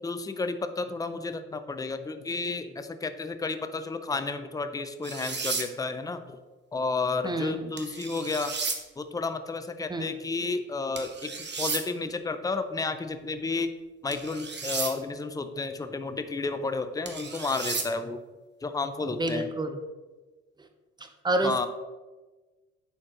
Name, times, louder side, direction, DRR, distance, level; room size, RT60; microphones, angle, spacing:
voice 1, 0.0-6.4 6.7-8.5 9.0-13.7 14.0-18.2 18.6-19.5 21.4-21.7, left 3 dB, 10° left, 9 dB, 0.5 m, -32 dB
sound 1, 5.0-5.7 7.8-8.8 11.0-11.8 14.1-14.9 17.1-17.9, right 4 dB, 30° right, 1.1 m, -33 dB
voice 2, 7.2-7.7 9.9-10.1 19.1-19.8 21.2-21.7, right 2 dB, 10° right, 7 dB, 0.8 m, -28 dB
10.0 x 4.3 x 3.0 m, 1.2 s
hypercardioid pair, 50°, 35 cm